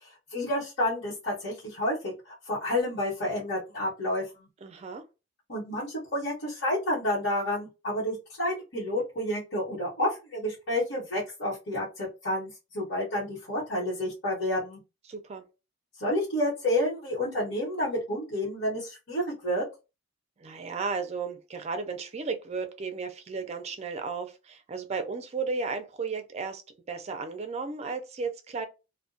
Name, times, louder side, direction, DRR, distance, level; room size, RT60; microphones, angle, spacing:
voice 1, 0.3-2.1 2.5-4.5 5.5-14.8 16.0-19.6, left 1 dB, 60° left, 1.1 m, -30 dB
voice 2, 4.6-5.0 15.1-15.4 20.4-26.6 26.9-28.7, right 4 dB, 35° right, 0.4 m, -34 dB
2.2 x 2.1 x 2.6 m
head